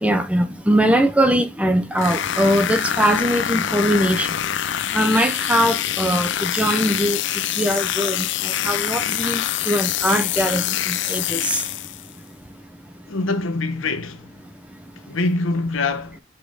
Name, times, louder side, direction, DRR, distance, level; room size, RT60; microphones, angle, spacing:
voice 1, 0.0-4.3 4.9-7.2 7.6-8.3 8.6-11.6, equal, 5° right, 0.5 m, -21 dB
sound 1, 1.9-12.1, left 11 dB, 55° left, 0.4 m, -25 dB
voice 2, 13.1-14.3 15.1-16.2, left 3 dB, 75° left, 0.8 m, -24 dB
5.8 x 3.8 x 4.7 m
head